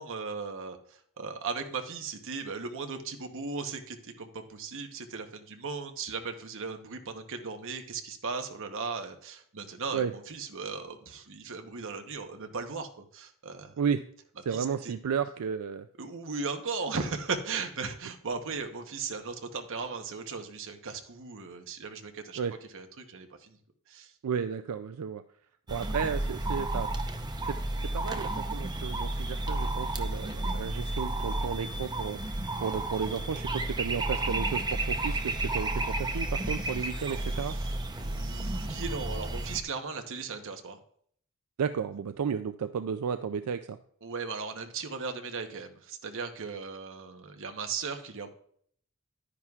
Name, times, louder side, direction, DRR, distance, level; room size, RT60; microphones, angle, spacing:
voice 1, 0.0-13.7 14.5-14.9 16.0-22.4 22.7-23.6 23.9-24.1 37.2-40.8 44.0-48.3, right 4 dB, 60° right, 6 dB, 1.0 m, -37 dB
voice 2, 14.5-15.9 22.4-22.6 24.2-25.2 25.7-26.9 27.4-27.6 27.9-32.2 32.6-37.6 41.6-43.8, right 6 dB, 85° right, 9 dB, 0.4 m, -33 dB
sound 1, 25.7-39.6, right 2 dB, 20° right, 0.7 m, -32 dB
11.0 x 10.0 x 2.4 m, 0.63 s
head